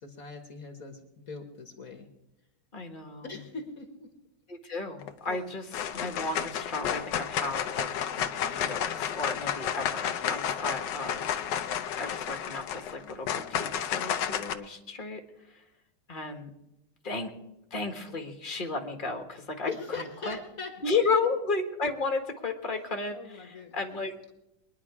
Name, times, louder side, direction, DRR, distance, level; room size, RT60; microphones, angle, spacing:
voice 1, 0.0-2.1 3.2-4.1 19.7-21.0 23.1-24.0, left 4 dB, 55° left, 5 dB, 1.7 m, -41 dB
voice 2, 2.7-3.3 4.5-11.3 11.9-15.2 15.5-15.6 16.1-16.5 17.0-17.3 17.7-19.7 19.9-20.4 20.8-24.1, left 3 dB, 30° left, 4 dB, 1.6 m, -33 dB
sound 1, 5.0-5.4 5.7-14.5, left 9 dB, 80° left, 1.4 m, -31 dB
22.5 x 10.0 x 4.8 m, 0.90 s
omnidirectional pair, 1.9 m